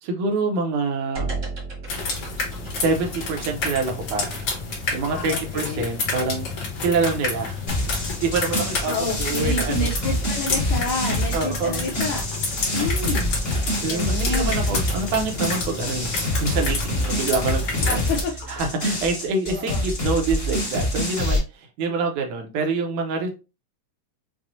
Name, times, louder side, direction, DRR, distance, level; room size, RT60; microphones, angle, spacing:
voice 1, 0.0-1.3 2.8-4.3 4.9-6.5 6.8-7.6 8.2-8.9 9.2-9.9 11.3-11.8 13.8-18.1 18.5-23.3, right 4 dB, 80° right, 4 dB, 1.7 m, -26 dB
sound 1, 1.1-18.6, right 2 dB, 50° right, 1.0 m, -39 dB
sound 2, 1.9-18.2, left 4 dB, 60° left, 2.1 m, -30 dB
voice 2, 5.1-5.8 8.8-12.2 12.7-13.3 13.9-14.6 17.9-18.3 19.5-19.8, left 2 dB, 80° left, -1 dB, 1.8 m, -29 dB
sound 3, 7.7-21.4, left 1 dB, 30° left, 1.0 m, -26 dB
5.9 x 2.0 x 2.6 m, 0.29 s
omnidirectional pair, 3.5 m